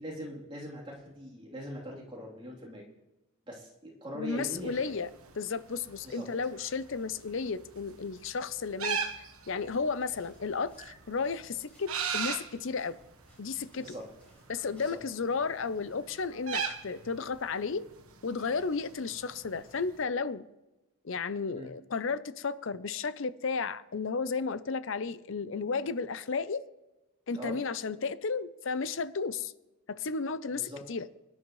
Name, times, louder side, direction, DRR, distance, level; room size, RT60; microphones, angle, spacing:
voice 1, 0.0-2.8 3.5-4.9 6.0-6.3 13.8-14.1 14.8-15.0 21.5-21.7 27.4-27.6 30.6-30.8, equal, 25° right, 3.2 m, -42 dB
voice 2, 4.1-5.1 5.4-9.0 9.5-13.0 13.4-13.9 14.5-17.9 18.2-20.5 21.0-26.6 27.3-29.5 29.9-31.1, left 5 dB, 60° left, 0.6 m, -33 dB
sound 1, 4.4-20.0, right 6 dB, 80° right, 1.3 m, -41 dB
sound 2, 10.0-15.0, left 1 dB, 5° left, 5.9 m, -64 dB
24.0 x 10.5 x 3.2 m
head